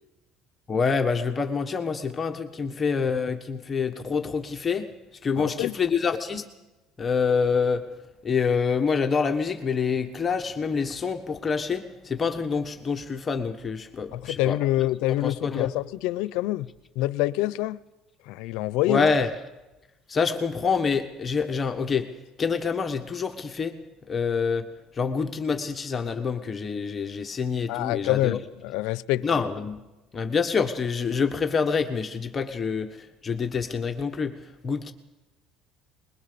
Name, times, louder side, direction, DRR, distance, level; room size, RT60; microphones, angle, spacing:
voice 1, 0.7-4.9 5.2-6.4 7.0-7.9 8.2-14.6 15.2-15.7 18.9-19.3 20.1-22.1 22.4-23.8 24.1-24.7 24.9-28.4 29.2-29.8 30.1-34.9, left 5 dB, 25° left, 1.4 m, -26 dB
voice 2, 5.4-5.8 14.1-16.7 17.0-17.8 18.3-19.1 27.7-29.3, left 16 dB, 80° left, 0.7 m, -26 dB
21.5 x 21.5 x 6.9 m
cardioid pair, 140°, 0 cm